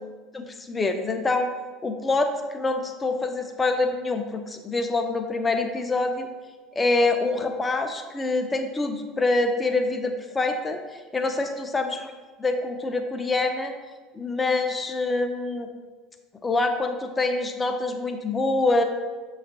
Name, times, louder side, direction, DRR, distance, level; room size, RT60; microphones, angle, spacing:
voice 1, 0.3-1.5 1.8-6.3 6.8-10.8 11.1-11.9 12.4-13.7 14.1-15.7 16.4-18.8, left 3 dB, 20° left, 5 dB, 0.4 m, -25 dB
6.3 x 2.4 x 2.6 m, 1.3 s
figure-of-eight pair, 70°, 0 cm